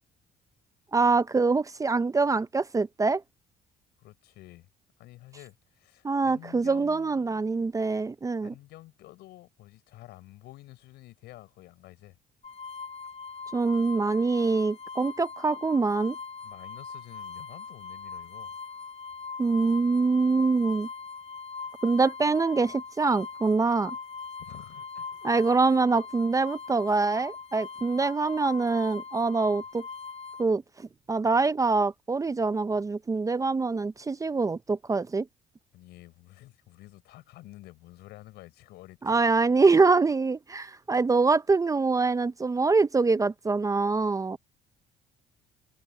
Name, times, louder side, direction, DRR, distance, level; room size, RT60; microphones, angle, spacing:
voice 1, 0.9-3.2 6.0-8.5 13.5-16.2 19.4-20.9 21.8-24.0 25.2-29.9 30.4-35.3 39.0-44.4, right 4 dB, 20° right, 0.6 m, -24 dB
voice 2, 4.0-4.7 5.0-7.5 8.4-12.2 16.4-18.6 24.4-25.3 29.5-29.6 35.7-39.2, left 16 dB, 85° left, 5.3 m, -50 dB
sound 1, 12.4-30.4, left 5 dB, 40° left, 4.0 m, -41 dB
cardioid pair, 110°, 17 cm